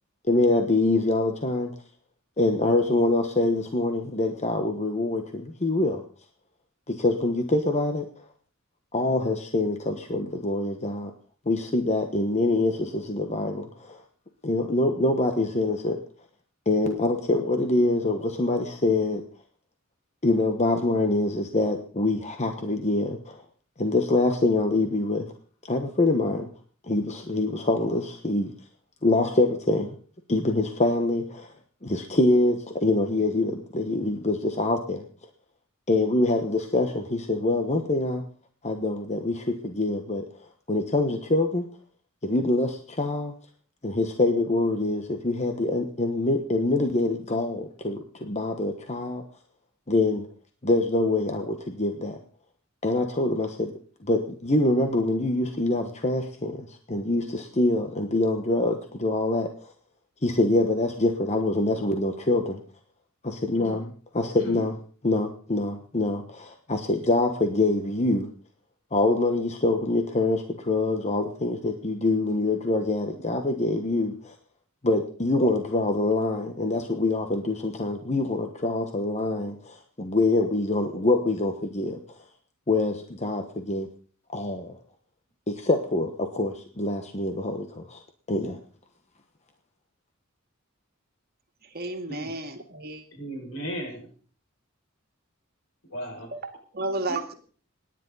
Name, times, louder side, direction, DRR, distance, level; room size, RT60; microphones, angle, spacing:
voice 1, 0.2-1.7 2.4-6.0 6.9-8.1 8.9-11.1 11.5-14.0 14.4-16.0 16.7-19.2 20.2-23.4 23.8-25.3 25.7-26.5 26.9-28.5 29.0-29.9 30.3-31.5 31.8-35.0 35.9-38.2 38.6-40.3 40.7-41.7 42.2-43.3 43.8-49.2 49.9-50.3 50.6-52.2 52.8-53.7 54.0-59.5 60.2-62.6 63.2-64.8 65.0-68.3 68.9-74.3 74.8-82.0 82.7-83.9 84.3-84.7 85.5-88.0 88.3-88.6, left 2 dB, 35° left, 5 dB, 1.2 m, -25 dB
voice 2, 64.3-64.6 92.1-92.3 93.2-94.1 95.9-96.3 97.1-97.2, right 1 dB, 80° left, 1 dB, 6.5 m, -35 dB
voice 3, 91.7-93.0 96.3-97.3, right 2 dB, 50° right, 4 dB, 2.3 m, -32 dB
27.0 x 10.5 x 4.1 m, 0.43 s
head